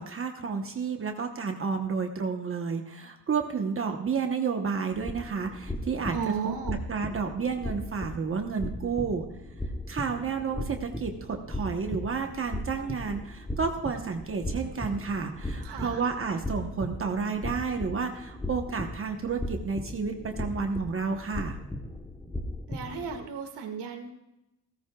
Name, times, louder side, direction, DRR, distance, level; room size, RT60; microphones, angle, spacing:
voice 1, 0.0-6.2 6.4-6.5 6.9-9.3 9.9-21.6, right 5 dB, 30° right, 4 dB, 1.0 m, -31 dB
sound 1, 4.9-23.2, left 1 dB, 10° left, 1.0 m, -37 dB
voice 2, 6.1-6.8 15.6-16.1 22.7-24.1, right 6 dB, 80° right, 3 dB, 2.0 m, -34 dB
17.0 x 15.0 x 2.3 m, 0.90 s
cardioid pair, 170°, 40 cm